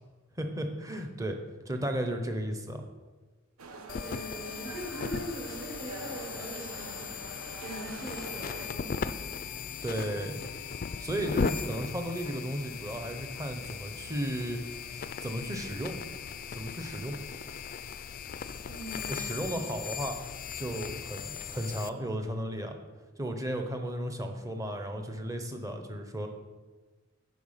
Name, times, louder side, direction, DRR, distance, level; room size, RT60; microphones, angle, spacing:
voice 1, 0.4-1.4 1.7-2.8 9.8-10.4 11.0-16.0 16.5-17.2 19.1-20.2 20.6-22.8 23.2-26.3, equal, 15° right, 5 dB, 0.7 m, -34 dB
sound 1, 3.6-8.7, right 3 dB, 80° right, 0.7 m, -44 dB
sound 2, 3.9-21.9, left 6 dB, 40° left, 0.3 m, -38 dB
voice 2, 4.0-9.5 11.4-11.6 18.7-19.6, equal, 50° right, -4 dB, 2.9 m, -42 dB
10.0 x 4.2 x 5.7 m, 1.3 s
head